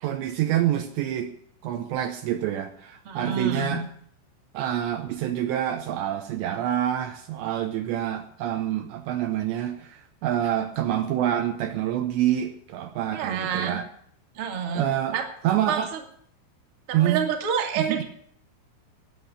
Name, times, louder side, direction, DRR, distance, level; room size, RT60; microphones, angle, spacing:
voice 1, 0.0-1.3 1.6-3.8 4.5-13.8 14.7-15.9 16.9-17.2 17.8-18.0, right 11 dB, 75° right, 6 dB, 2.8 m, -27 dB
voice 2, 3.1-3.8 13.1-13.8 14.3-14.8 15.1-15.2 15.7-16.0 16.9-18.0, right 6 dB, 45° right, 3 dB, 1.8 m, -28 dB
18.0 x 6.3 x 9.9 m, 0.62 s
omnidirectional pair, 5.8 m